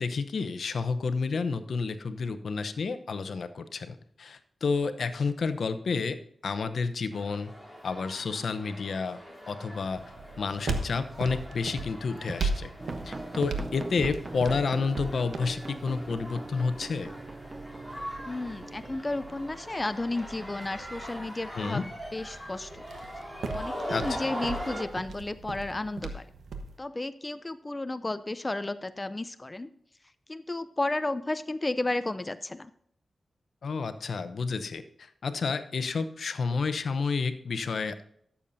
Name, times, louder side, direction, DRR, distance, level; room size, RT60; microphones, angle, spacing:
voice 1, 0.0-6.2 6.4-7.5 7.8-9.2 9.5-10.0 10.4-12.7 13.0-17.1 21.5-21.8 23.9-24.3 33.6-38.0, left 4 dB, 75° left, 11 dB, 0.8 m, -30 dB
sound 1, 7.1-24.8, equal, 5° right, 3.3 m, -42 dB
sound 2, 9.7-26.8, right 3 dB, 85° right, 1.2 m, -39 dB
sound 3, 12.8-19.5, right 2 dB, 30° right, 0.5 m, -42 dB
voice 2, 18.3-21.8 22.1-22.8 23.5-26.3 26.8-29.7 30.3-32.7, left 2 dB, 25° left, 12 dB, 0.5 m, -33 dB
13.5 x 7.2 x 2.7 m, 0.67 s
cardioid pair, 70°, 0 cm